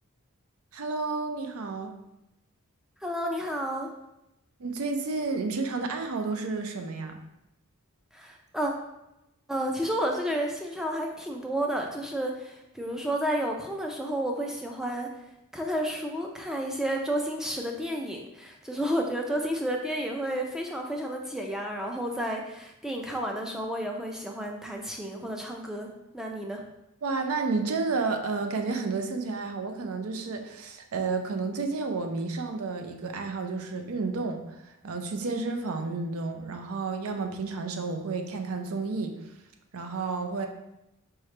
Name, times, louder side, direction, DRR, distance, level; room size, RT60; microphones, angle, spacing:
voice 1, 0.7-1.9 4.6-7.2 27.0-39.2 39.7-40.5, right 4 dB, 70° right, 5 dB, 0.5 m, -31 dB
voice 2, 3.0-3.9 8.1-8.7 9.5-15.1 15.5-26.6, equal, ahead, 1 dB, 0.4 m, -31 dB
4.7 x 3.1 x 3.2 m, 0.90 s
head